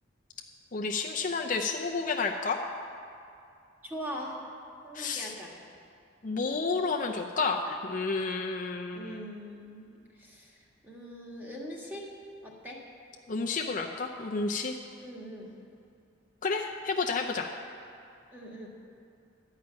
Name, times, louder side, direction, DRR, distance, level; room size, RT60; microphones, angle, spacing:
voice 1, 0.7-2.6 4.9-5.3 6.2-9.2 13.3-14.8 16.4-17.5, left 4 dB, 45° left, 2 dB, 0.6 m, -31 dB
voice 2, 3.8-4.4 4.8-5.5 8.9-9.9 10.2-12.1 12.4-12.8 15.0-15.5 18.3-18.7, equal, 10° right, -3 dB, 1.8 m, -41 dB
12.0 x 5.8 x 8.8 m, 2.5 s
head